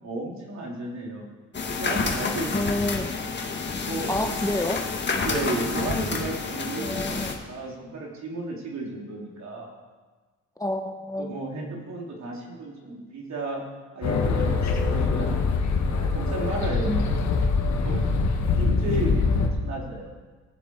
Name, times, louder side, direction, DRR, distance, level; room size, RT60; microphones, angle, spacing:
voice 1, 0.0-1.3 1.7-2.7 3.0-3.1 3.9-4.1 5.2-9.7 11.2-13.6 13.9-15.5 16.0-17.2 17.8-18.0 18.6-20.1, right 2 dB, 65° right, -2 dB, 3.5 m, -33 dB
sound 1, 1.5-7.3, left 4 dB, 35° left, 1.9 m, -29 dB
voice 2, 2.5-3.1 4.1-4.8 6.8-7.4 10.6-11.4 16.9-17.0, left 1 dB, 10° left, 4 dB, 1.1 m, -28 dB
sound 2, 14.0-19.5, left 4 dB, 65° left, 1.7 m, -23 dB
18.5 x 7.4 x 4.7 m, 1.3 s
cardioid pair, 90°, 30 cm